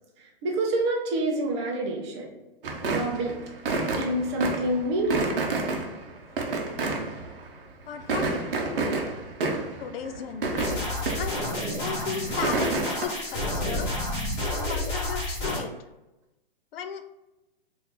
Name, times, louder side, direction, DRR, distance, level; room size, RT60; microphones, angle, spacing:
voice 1, 0.2-2.3 2.8-3.3 4.0-5.4, right 1 dB, 30° right, 0 dB, 0.6 m, -27 dB
sound 1, 2.6-7.6 7.9-11.5 11.8-13.1, right 3 dB, 70° right, 0.7 m, -30 dB
voice 2, 7.9-8.9 9.6-11.5 11.8-13.9 14.7-15.7 16.7-17.0, left 7 dB, 75° left, 8 dB, 0.5 m, -36 dB
sound 2, 10.6-15.6, left 1 dB, 20° left, 1.3 m, -30 dB
2.9 x 2.6 x 3.7 m, 0.98 s
hypercardioid pair, 160°, 29 cm